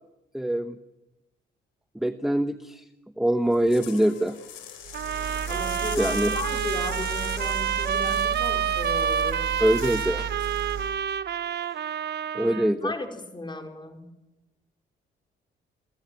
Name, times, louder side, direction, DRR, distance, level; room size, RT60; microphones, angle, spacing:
voice 1, 0.3-0.8 1.9-2.8 3.2-4.4 6.0-6.3 9.6-10.3 11.7-11.8 12.3-12.9, right 1 dB, ahead, 9 dB, 1.0 m, -24 dB
sound 1, 3.5-10.1 10.4-10.7, left 9 dB, 90° left, 6.5 m, -42 dB
sound 2, 4.8-11.0, right 7 dB, 85° right, 5.3 m, -35 dB
sound 3, 4.9-12.7, right 8 dB, 60° right, 1.1 m, -28 dB
voice 2, 5.5-9.5 12.4-12.6 12.8-14.1, left 2 dB, 25° left, 4 dB, 4.8 m, -35 dB
27.5 x 17.0 x 9.2 m, 0.98 s
cardioid pair, 90°, 20 cm